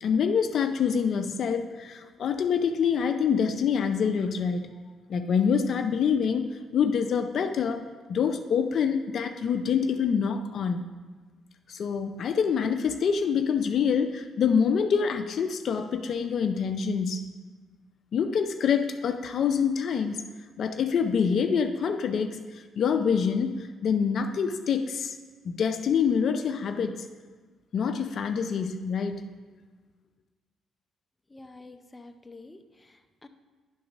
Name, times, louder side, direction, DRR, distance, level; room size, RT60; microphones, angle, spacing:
voice 1, 0.0-4.7 5.1-6.5 6.7-7.8 8.1-10.8 11.7-17.2 18.1-20.2 20.6-22.4 22.8-23.5 23.8-25.2 25.4-27.0 27.7-29.3, left 6 dB, 60° left, 7 dB, 0.5 m, -26 dB
voice 2, 31.3-33.3, left 2 dB, 15° left, 6 dB, 0.6 m, -49 dB
10.5 x 3.9 x 5.3 m, 1.3 s
cardioid pair, 90°, 0 cm